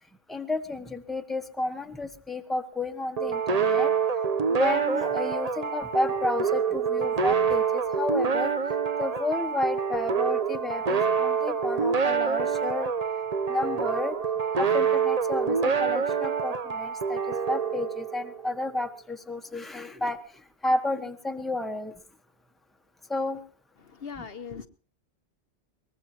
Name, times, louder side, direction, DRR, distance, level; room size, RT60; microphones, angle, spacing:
voice 1, 0.3-3.9 4.5-8.5 9.0-12.9 13.5-14.1 14.6-20.2 20.6-21.9 23.1-23.4 24.2-24.3, left 2 dB, ahead, 5 dB, 1.3 m, -31 dB
sound 1, 3.2-18.5, right 6 dB, 40° right, 0.9 m, -26 dB
voice 2, 23.8-24.7, left 6 dB, 60° left, 9 dB, 1.1 m, -39 dB
22.5 x 20.0 x 2.9 m, 0.36 s
omnidirectional pair, 1.2 m